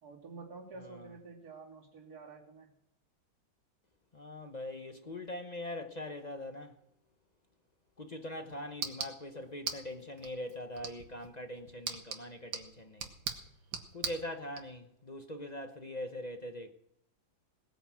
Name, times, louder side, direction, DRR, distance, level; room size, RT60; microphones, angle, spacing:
voice 1, 0.0-2.7, right 4 dB, 50° right, 3.4 m, -49 dB
voice 2, 4.1-6.7 8.0-13.1 13.9-16.7, left 1 dB, 40° left, 0.6 m, -42 dB
sound 1, 8.0-14.6, right 6 dB, 70° right, 2.2 m, -43 dB
19.0 x 9.2 x 6.3 m
omnidirectional pair, 2.2 m